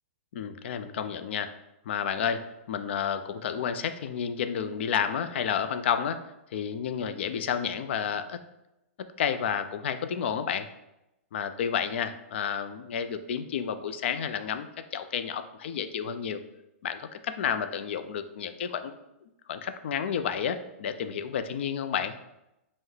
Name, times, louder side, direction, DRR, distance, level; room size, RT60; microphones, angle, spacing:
voice 1, 0.3-1.5 1.9-6.2 6.5-8.4 9.2-10.7 11.3-16.4 16.8-19.0 19.5-22.1, left 7 dB, 60° left, 10 dB, 0.4 m, -31 dB
5.5 x 2.1 x 3.2 m, 0.90 s
hypercardioid pair, 155°, 7 cm